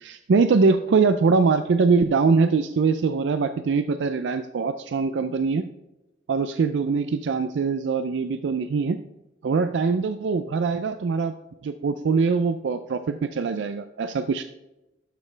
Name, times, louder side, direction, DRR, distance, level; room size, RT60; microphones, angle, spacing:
voice 1, 0.0-5.7 6.3-9.0 9.4-11.3 11.6-14.4, right 4 dB, 80° right, 10 dB, 0.4 m, -22 dB
12.0 x 6.5 x 3.3 m, 1.0 s
head